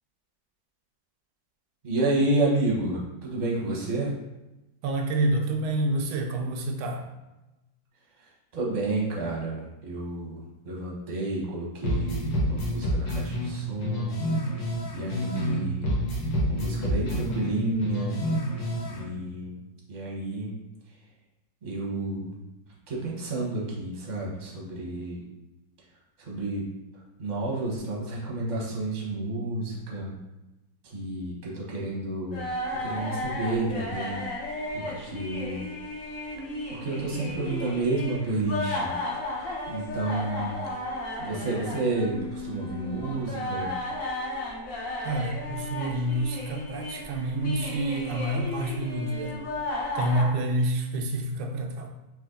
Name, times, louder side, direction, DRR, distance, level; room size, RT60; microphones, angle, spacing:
voice 1, 1.8-4.1 8.2-14.2 14.9-15.9 16.5-18.3 18.9-19.6 19.9-20.6 21.6-22.4 22.9-25.2 26.2-26.7 26.9-30.2 30.8-34.3 34.7-35.6 36.7-39.0 39.4-43.7, right 2 dB, 30° right, -3 dB, 0.8 m, -30 dB
voice 2, 4.8-7.1 45.0-49.4 49.9-51.9, right 1 dB, 85° right, 3 dB, 1.4 m, -28 dB
sound 1, 11.8-15.6 15.8-19.0, equal, 90° left, 2.1 m, -28 dB
sound 2, 32.3-50.2, left 1 dB, 55° left, 1.1 m, -34 dB
4.2 x 3.1 x 3.8 m, 1.0 s
omnidirectional pair, 2.2 m